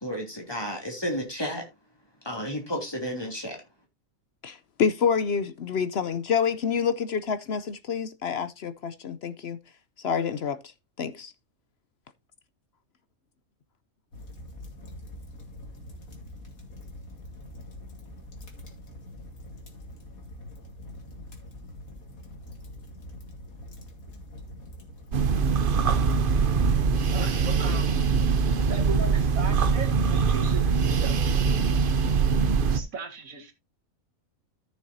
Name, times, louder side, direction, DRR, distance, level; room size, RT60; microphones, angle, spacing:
voice 1, 0.0-1.6 2.2-3.6, equal, 15° left, 2.8 m, -32 dB
voice 2, 4.4-9.6 10.0-10.6 11.0-11.3, left 6 dB, 60° left, 0.8 m, -27 dB
sound 1, 14.1-27.8, left 1 dB, 85° left, 2.5 m, -44 dB
sound 2, 25.1-32.8, right 5 dB, 50° right, 0.8 m, -23 dB
voice 3, 27.1-28.0 28.6-31.2 32.7-33.5, right 4 dB, 75° right, 2.0 m, -37 dB
14.0 x 6.6 x 2.7 m
omnidirectional pair, 1.4 m